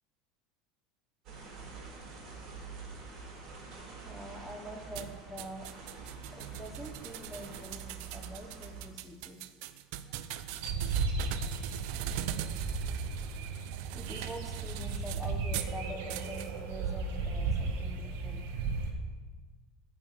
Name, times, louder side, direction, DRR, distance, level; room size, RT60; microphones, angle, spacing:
sound 1, 1.2-8.8, right 5 dB, 40° right, 4.7 m, -46 dB
voice 1, 4.0-6.0 6.3-9.4 11.4-12.0 12.6-18.6, equal, ahead, 2 dB, 1.4 m, -46 dB
sound 2, 4.9-15.8 16.1-16.5, right 11 dB, 65° right, 0.7 m, -41 dB
sound 3, 10.6-18.9, right 4 dB, 80° right, 1.8 m, -35 dB
14.0 x 5.5 x 8.3 m, 1.4 s
supercardioid pair, 160°, 0 cm